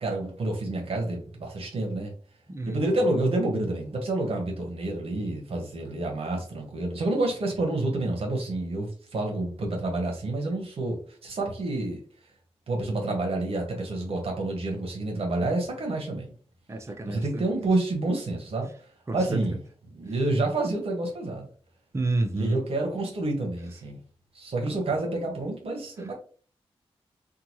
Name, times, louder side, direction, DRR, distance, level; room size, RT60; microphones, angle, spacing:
voice 1, 0.0-2.1 2.7-12.0 12.7-16.3 17.1-18.7 19.1-19.6 19.9-21.5 22.3-24.0 24.3-26.1, right 2 dB, 65° right, 0.9 m, -28 dB
voice 2, 16.7-17.5 19.1-19.4 21.9-22.6, right 2 dB, 25° right, 0.5 m, -30 dB
2.8 x 2.3 x 2.9 m
wide cardioid pair, 85°, 11 cm